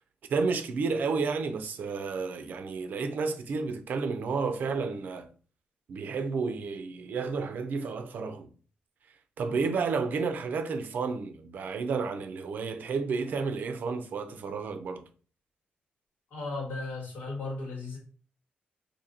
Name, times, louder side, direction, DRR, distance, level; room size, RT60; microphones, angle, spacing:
voice 1, 0.3-5.3 5.9-8.5 9.4-15.0, right 4 dB, 60° right, 0.5 m, -31 dB
voice 2, 16.3-18.0, left 3 dB, 90° left, 1.7 m, -35 dB
4.2 x 2.7 x 2.6 m
wide cardioid pair, 160°, 3 cm